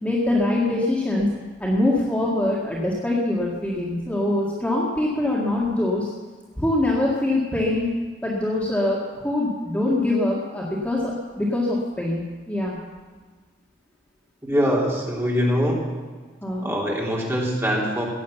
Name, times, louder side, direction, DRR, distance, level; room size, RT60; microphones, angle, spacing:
voice 1, 0.0-1.3 1.6-6.1 6.6-7.9 8.2-12.8 16.4-16.7, left 1 dB, 10° left, -5 dB, 1.9 m, -23 dB
voice 2, 14.4-15.8 16.6-18.1, equal, 15° right, -3 dB, 3.1 m, -23 dB
16.0 x 9.2 x 7.1 m, 1.4 s
head